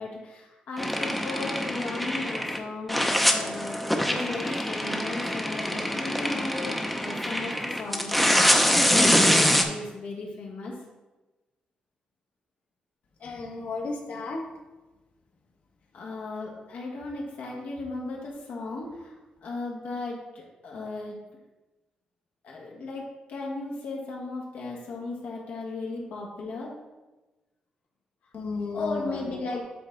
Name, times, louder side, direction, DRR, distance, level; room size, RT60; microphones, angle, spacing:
voice 1, 0.0-10.8 15.9-19.1 19.4-21.2 22.4-26.7 28.7-29.6, left 3 dB, 90° left, -2 dB, 1.7 m, -36 dB
sound 1, 0.8-2.6 2.9-9.6, equal, 5° left, 0.6 m, -24 dB
voice 2, 13.2-14.5 28.3-29.5, left 3 dB, 65° left, 1 dB, 1.2 m, -34 dB
8.5 x 4.0 x 3.8 m, 1.1 s
wide cardioid pair, 130°, 3 cm